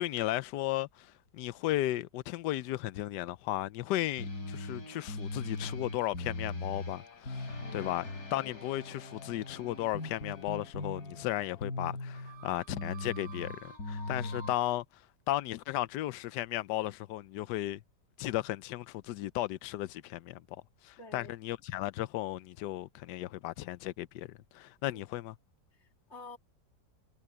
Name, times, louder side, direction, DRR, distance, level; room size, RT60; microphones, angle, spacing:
voice 1, 0.0-8.0 8.3-14.8 15.3-17.8 18.2-20.4 20.8-24.3 24.5-25.3, left 15 dB, 80° left, 1.2 m, -35 dB
sound 1, 4.2-14.6, left 2 dB, 60° left, 4.6 m, -40 dB
voice 2, 7.6-7.9 8.4-8.5 14.1-14.5 21.0-21.3 24.9-25.0 25.8-26.4, left 3 dB, 40° left, 3.1 m, -50 dB
omnidirectional pair, 1.9 m